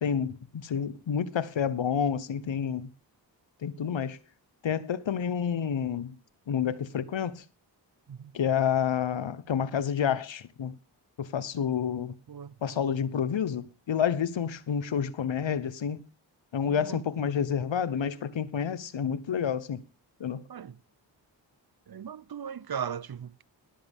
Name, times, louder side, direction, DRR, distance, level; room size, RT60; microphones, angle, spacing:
voice 1, 0.0-2.9 3.6-4.2 4.6-6.1 6.5-7.4 8.3-10.7 11.2-12.1 12.6-16.0 16.5-19.8 20.2-20.4, left 8 dB, 75° left, 1.1 m, -29 dB
voice 2, 16.7-17.0 19.0-19.1 20.5-20.8 21.9-23.4, right 8 dB, 50° right, 0.8 m, -38 dB
20.0 x 7.7 x 3.6 m
cardioid pair, 45°, 45 cm